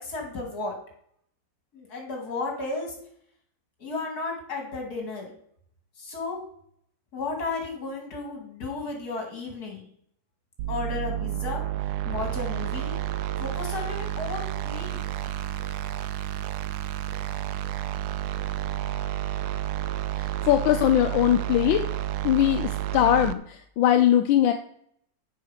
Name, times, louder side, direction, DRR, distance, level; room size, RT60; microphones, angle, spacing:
voice 1, 0.0-0.7 1.7-3.0 3.8-5.3 6.0-6.4 7.1-9.8 10.7-11.6 12.1-13.0 13.4-15.0, left 3 dB, 55° left, 1 dB, 2.7 m, -33 dB
sound 1, 10.6-23.3, right 13 dB, 70° right, 1.0 m, -30 dB
voice 2, 20.2-21.9 22.2-24.5, left 11 dB, 85° left, 6 dB, 1.4 m, -21 dB
7.4 x 5.7 x 5.7 m, 0.66 s
omnidirectional pair, 2.1 m